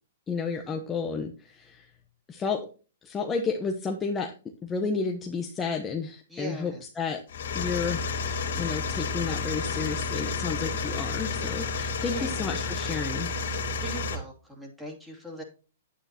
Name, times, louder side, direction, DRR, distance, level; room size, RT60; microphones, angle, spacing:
voice 1, 0.3-1.9 2.3-2.7 3.0-4.3 4.6-7.2 7.5-8.1 8.6-13.3, left 5 dB, 15° left, 2 dB, 1.0 m, -31 dB
voice 2, 6.3-6.8 12.0-12.5 13.8-15.4, right 1 dB, 5° right, 0 dB, 2.8 m, -40 dB
sound 1, 7.3-14.2, left 4 dB, 70° left, 2.3 m, -31 dB
9.0 x 8.9 x 2.9 m, 0.34 s
hypercardioid pair, 140°, 0 cm